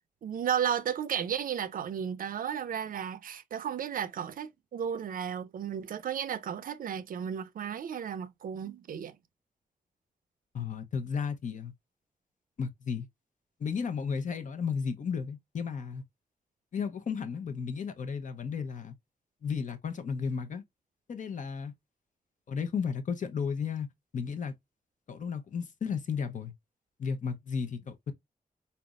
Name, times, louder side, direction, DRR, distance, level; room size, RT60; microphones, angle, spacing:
voice 1, 0.2-9.2, right 8 dB, 80° right, 0.5 m, -34 dB
voice 2, 10.5-11.7 12.6-13.1 13.6-16.0 16.7-18.9 19.4-20.6 21.1-21.7 22.5-23.9 24.1-24.5 25.1-26.5 27.0-28.1, left 6 dB, 60° left, 0.8 m, -33 dB
4.1 x 3.4 x 2.3 m
wide cardioid pair, 110°, 14 cm